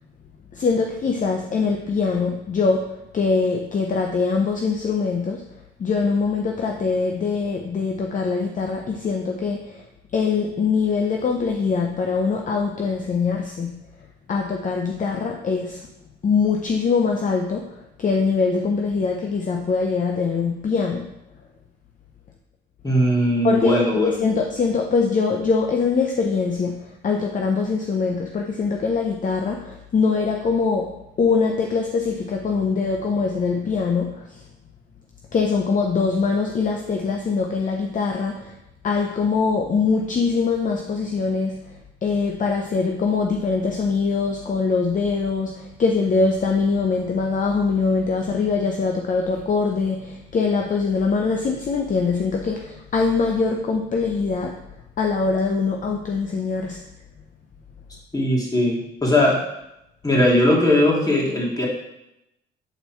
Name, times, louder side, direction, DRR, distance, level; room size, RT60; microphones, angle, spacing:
voice 1, 0.5-5.4 5.8-9.8 10.1-13.7 14.3-15.9 16.2-21.1 23.4-30.9 31.2-34.4 35.3-38.6 38.8-41.6 42.0-54.6 55.0-56.8, left 4 dB, 40° left, 2 dB, 0.8 m, -23 dB
voice 2, 22.8-24.1 58.1-59.4 60.0-61.7, left 1 dB, 20° left, -3 dB, 2.5 m, -19 dB
8.2 x 4.2 x 4.5 m, 0.85 s
cardioid pair, 90°, 20 cm